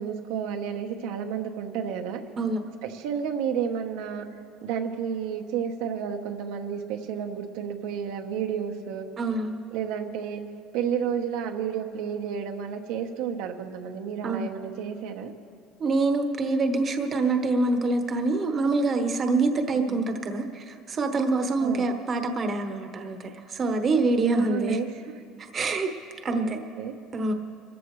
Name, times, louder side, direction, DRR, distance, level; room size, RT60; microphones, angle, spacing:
voice 1, 0.0-2.2 2.8-4.2 4.6-9.1 9.7-10.4 10.7-15.3 19.7-20.1 21.6-21.9 24.3-24.9 26.4-26.9, right 8 dB, 80° right, 3 dB, 1.1 m, -31 dB
voice 2, 2.4-2.7 9.2-9.6 14.2-14.5 15.8-24.8 25.4-25.9 26.2-26.6 27.1-27.3, right 3 dB, 30° right, 5 dB, 1.1 m, -25 dB
25.0 x 14.5 x 3.2 m, 2.3 s
cardioid pair, 130°, 0 cm